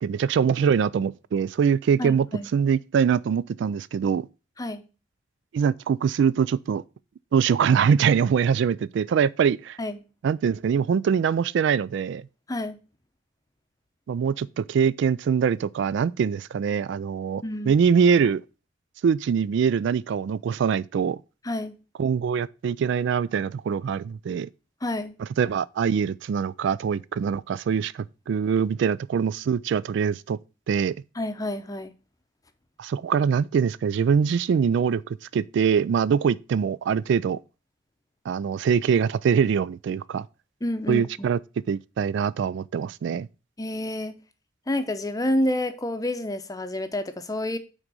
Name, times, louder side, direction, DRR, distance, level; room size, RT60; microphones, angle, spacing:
voice 1, 0.0-2.3 2.5-4.3 5.5-6.8 7.3-9.8 10.2-12.2 14.1-18.4 19.0-21.2 22.0-24.5 25.2-30.4 30.7-31.0 32.8-35.0 35.3-37.4 38.3-40.3 40.9-41.4 41.7-43.3, right 7 dB, 65° right, 0.3 m, -23 dB
voice 2, 2.0-2.5 4.6-4.8 9.8-10.0 12.5-12.8 17.4-17.8 21.4-21.7 24.8-25.1 31.2-31.9 40.6-41.3 43.6-44.2 44.7-47.6, left 1 dB, 20° left, 0.7 m, -29 dB
6.2 x 3.9 x 6.1 m
head